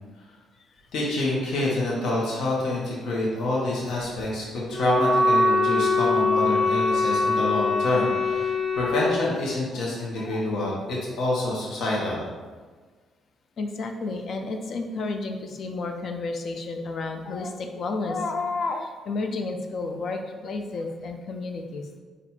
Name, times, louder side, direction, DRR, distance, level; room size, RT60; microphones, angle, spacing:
voice 1, 0.9-12.2, left 1 dB, 75° left, -4 dB, 1.0 m, -27 dB
Wind instrument woodwind instrument, 4.7-9.0, left 3 dB, 15° left, 1.4 m, -22 dB
voice 2, 13.6-21.9, left 3 dB, 60° left, 5 dB, 0.5 m, -31 dB
4.1 x 2.5 x 4.2 m, 1.4 s
cardioid pair, 90°, 0 cm